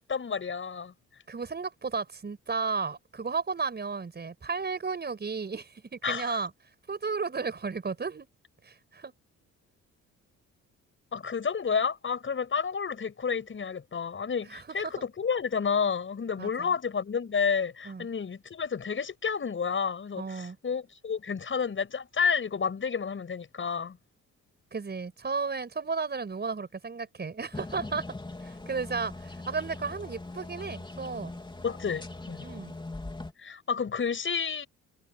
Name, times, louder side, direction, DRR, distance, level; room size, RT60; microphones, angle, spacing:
voice 1, 0.1-0.9 6.0-6.4 11.1-24.0 31.6-32.4 33.4-34.7, left 6 dB, 40° left, 6.5 m, -30 dB
voice 2, 1.3-6.5 6.9-8.3 8.6-9.1 14.5-15.0 16.4-16.7 17.8-18.1 20.2-20.6 24.7-28.1 28.4-31.4 32.4-32.8, right 4 dB, 35° right, 5.9 m, -34 dB
sound 1, 27.5-33.3, left 2 dB, 15° left, 3.7 m, -41 dB
cardioid pair, 90°, 30 cm